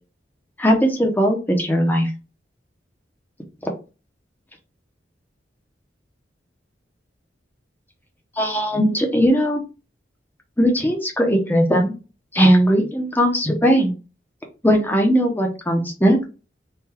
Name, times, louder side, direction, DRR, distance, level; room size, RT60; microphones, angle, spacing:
voice 1, 0.6-2.1 8.4-9.6 10.6-11.9 12.3-13.9 14.6-16.2, equal, 10° left, 2 dB, 0.8 m, -18 dB
3.8 x 2.5 x 2.9 m, 0.31 s
head